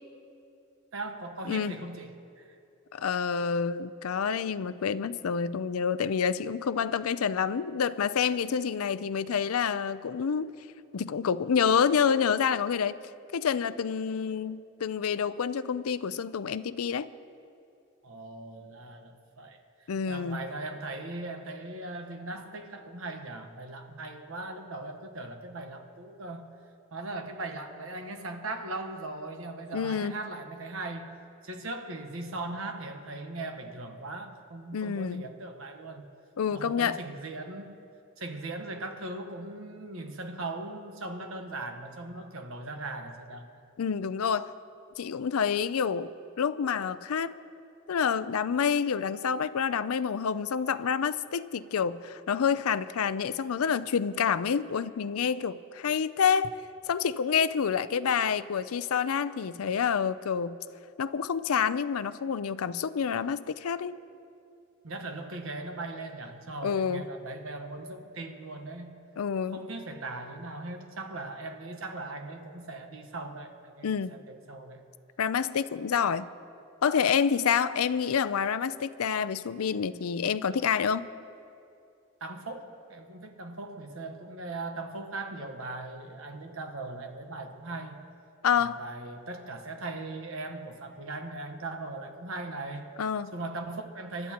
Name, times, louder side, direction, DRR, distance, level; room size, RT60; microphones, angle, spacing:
voice 1, 0.9-2.5 18.0-26.5 26.9-31.1 31.4-36.1 36.5-37.9 38.2-43.5 64.8-69.0 69.5-74.8 82.2-88.1 88.5-93.0 93.3-94.3, right 2 dB, 75° right, 5 dB, 1.2 m, -39 dB
voice 2, 1.5-1.8 2.9-10.5 10.9-12.9 13.3-17.1 19.9-20.4 29.7-30.1 34.7-35.2 36.4-37.0 43.8-44.5 45.0-46.1 46.4-47.3 47.9-56.6 56.9-60.6 61.0-63.9 66.6-67.0 69.2-69.6 73.8-74.2 75.2-76.3 76.8-81.1 88.4-88.8 93.0-93.3, left 7 dB, 85° left, 15 dB, 0.5 m, -28 dB
27.5 x 12.5 x 3.0 m, 2.6 s
head